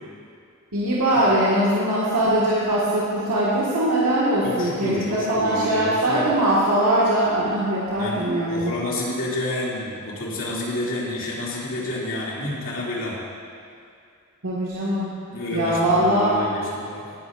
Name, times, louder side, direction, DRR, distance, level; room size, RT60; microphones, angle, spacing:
voice 1, 0.7-8.7 14.4-15.1 15.5-16.4, right 1 dB, 85° right, -9 dB, 1.8 m, -21 dB
voice 2, 4.4-6.3 8.0-13.2 15.3-17.1, left 1 dB, 60° left, -6 dB, 2.7 m, -29 dB
18.5 x 10.0 x 2.6 m, 2.3 s
head